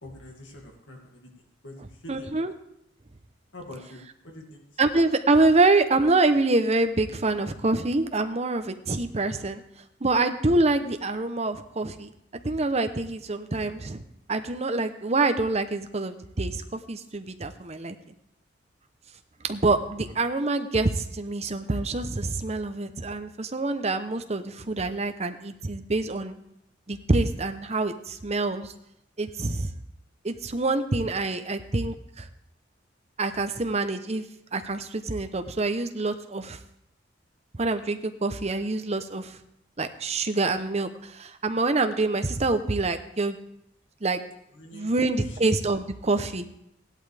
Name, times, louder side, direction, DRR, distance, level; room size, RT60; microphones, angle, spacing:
voice 1, 0.0-2.4 3.5-4.7 44.5-45.4, left 1 dB, 70° left, 0 dB, 2.4 m, -45 dB
voice 2, 2.1-2.5 4.8-9.6 10.0-12.1 12.4-14.0 14.3-18.0 19.4-26.4 26.9-28.7 29.2-29.7 30.2-32.3 33.2-34.2 34.5-36.6 37.6-39.4 39.8-43.4 44.0-44.2 44.7-46.4, right 2 dB, 35° right, 8 dB, 0.8 m, -26 dB
16.5 x 11.5 x 3.5 m, 0.78 s
head